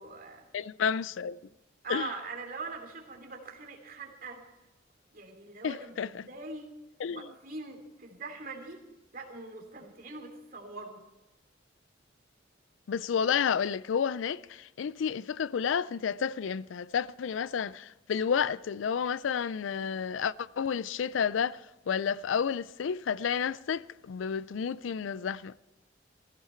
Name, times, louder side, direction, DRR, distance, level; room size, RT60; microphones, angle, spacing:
voice 1, 0.0-0.5 1.8-4.4 5.1-6.7 7.1-8.8 9.1-11.0, right 3 dB, 50° right, 2.8 m, -42 dB
voice 2, 0.5-1.4 1.9-2.1 5.6-6.3 7.0-7.3 12.9-21.6 21.9-25.6, left 7 dB, 90° left, 0.4 m, -31 dB
15.5 x 15.5 x 4.4 m
head